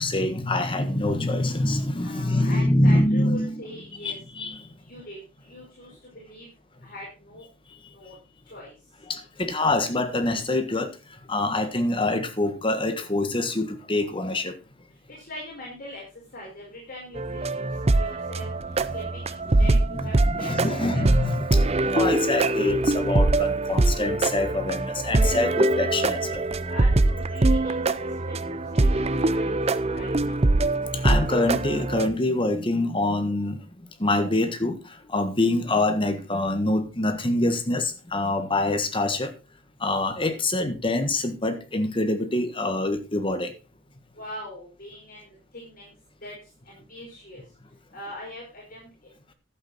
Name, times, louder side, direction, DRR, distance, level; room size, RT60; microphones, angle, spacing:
voice 1, 0.0-3.6 4.0-4.7 9.1-11.0 11.3-14.6 19.6-26.4 30.9-33.6 34.0-39.3 39.8-43.5, left 2 dB, 25° left, 1.5 m, -25 dB
voice 2, 2.0-4.2 4.8-5.2 5.5-6.5 6.8-7.5 7.9-8.2 8.5-8.7 15.2-16.0 16.3-18.5 18.9-21.1 26.7-27.8 28.5-30.5 44.2-45.9 46.2-46.3 46.7-47.4 47.9-48.9, left 1 dB, 45° left, 4.7 m, -42 dB
sound 1, 17.2-32.1, right 2 dB, 30° right, 0.6 m, -23 dB
11.5 x 8.5 x 4.2 m
head